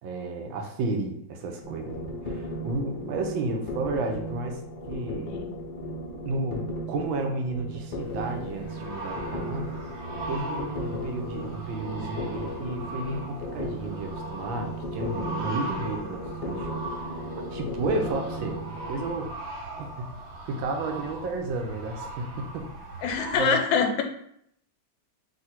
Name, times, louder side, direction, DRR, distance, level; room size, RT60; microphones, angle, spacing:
voice 1, 0.0-4.6 4.9-5.3 6.3-9.7 10.3-17.1 17.5-19.3 19.8-20.1 20.5-22.7 23.3-23.6, right 3 dB, 80° right, 3 dB, 1.5 m, -32 dB
sound 1, 1.6-19.1, equal, 65° left, 0.5 m, -36 dB
sound 2, 8.0-23.5, right 2 dB, 55° right, 0.8 m, -39 dB
voice 2, 23.0-24.0, left 6 dB, 85° left, 4 dB, 1.4 m, -25 dB
3.8 x 2.6 x 4.3 m, 0.70 s
omnidirectional pair, 2.1 m